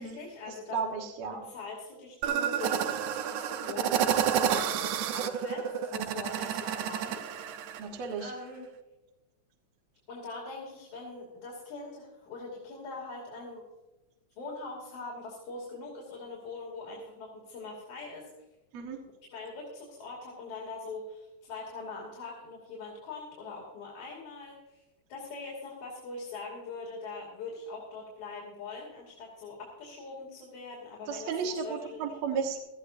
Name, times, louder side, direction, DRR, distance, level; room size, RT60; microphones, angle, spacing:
voice 1, 0.0-0.8 1.4-7.4 8.2-8.7 10.1-13.7 14.4-18.3 19.3-24.8 25.1-32.2, left 3 dB, 75° left, -4 dB, 4.2 m, -42 dB
voice 2, 0.7-1.4 7.8-8.3 18.7-19.0 31.1-32.6, right 6 dB, 65° right, 2 dB, 2.5 m, -33 dB
sound 1, 2.2-7.8, right 9 dB, 85° right, 2.3 m, -30 dB
18.5 x 13.5 x 2.6 m, 1.1 s
omnidirectional pair, 3.4 m